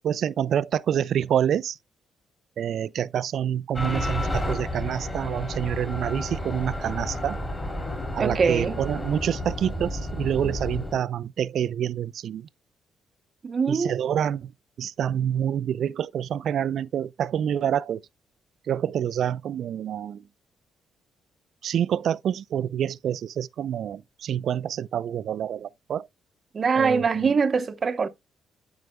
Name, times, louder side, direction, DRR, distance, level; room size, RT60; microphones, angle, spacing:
voice 1, 0.0-1.8 2.6-7.4 8.1-12.5 13.7-14.5 14.8-18.0 18.7-20.2 21.6-26.1 26.8-27.4, right 9 dB, 65° right, 0.4 m, -27 dB
sound 1, 3.7-11.0, left 1 dB, 20° left, 3.0 m, -31 dB
voice 2, 8.2-8.8 13.4-14.0 26.5-28.1, right 5 dB, 40° right, 0.8 m, -23 dB
12.0 x 4.8 x 2.2 m
cardioid pair, 90°, 0 cm